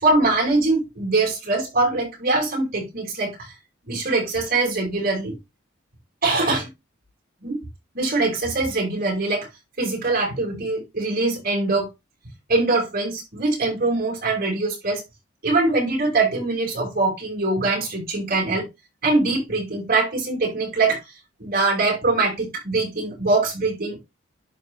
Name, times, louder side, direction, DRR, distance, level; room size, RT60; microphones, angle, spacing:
voice 1, 0.0-3.5 3.9-5.3 6.2-6.7 7.4-7.5 7.9-9.5 9.8-11.9 12.5-15.0 15.4-18.6 19.0-21.0 21.4-24.0, right 3 dB, 45° right, -1 dB, 4.7 m, -22 dB
11.0 x 4.5 x 3.2 m, 0.21 s
head